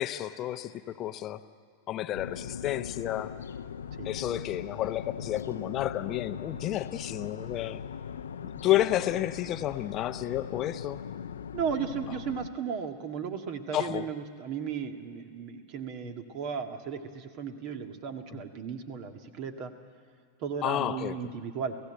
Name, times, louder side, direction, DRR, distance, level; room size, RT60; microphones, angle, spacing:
voice 1, 0.0-1.4 1.9-3.3 4.0-7.8 8.4-11.0 13.7-14.1 18.3-18.4 20.6-21.1, left 13 dB, 35° left, 11 dB, 0.8 m, -31 dB
sound 1, 2.1-12.5, left 7 dB, 65° left, 0.7 m, -40 dB
voice 2, 11.5-19.7 20.4-21.8, right 7 dB, 40° right, 7 dB, 1.9 m, -35 dB
29.0 x 16.5 x 9.0 m, 2.1 s
figure-of-eight pair, 90°, 0 cm